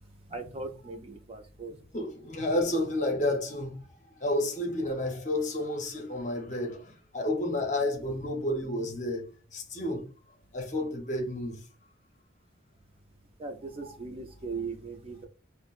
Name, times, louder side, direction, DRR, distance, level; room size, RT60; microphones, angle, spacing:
voice 1, 0.3-1.7 13.4-15.3, right 4 dB, 30° right, 0.4 m, -39 dB
voice 2, 1.9-3.9 4.2-10.1 10.5-11.6 13.8-13.9, left 1 dB, 35° left, 0.7 m, -31 dB
5.8 x 2.0 x 2.4 m
head